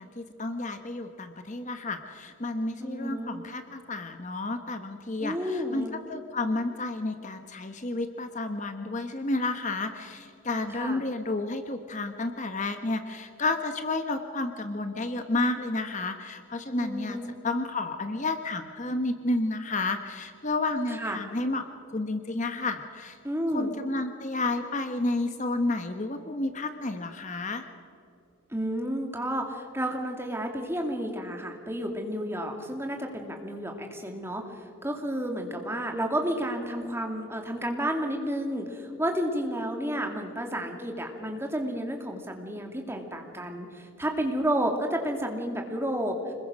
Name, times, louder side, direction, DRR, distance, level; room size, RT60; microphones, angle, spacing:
voice 1, 0.0-17.2 17.4-23.2 23.5-27.6, left 2 dB, 35° left, 7 dB, 1.0 m, -31 dB
voice 2, 2.8-3.4 5.2-6.0 10.7-11.0 16.8-17.3 20.9-21.2 23.2-23.7 28.5-46.3, equal, 10° right, 3 dB, 2.4 m, -31 dB
26.0 x 21.0 x 6.3 m, 2.5 s
head